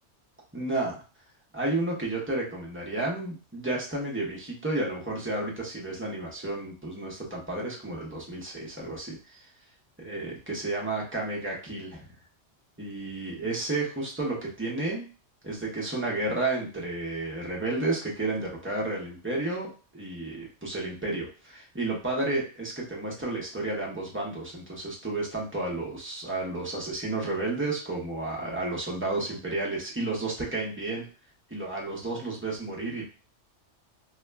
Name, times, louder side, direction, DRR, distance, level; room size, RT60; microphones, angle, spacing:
voice 1, 0.5-1.0 1.5-9.4 10.0-12.1 12.8-15.1 15.4-31.0 31.5-33.1, right 2 dB, 15° right, -3 dB, 0.5 m, -32 dB
2.3 x 2.1 x 3.3 m, 0.35 s
omnidirectional pair, 1.2 m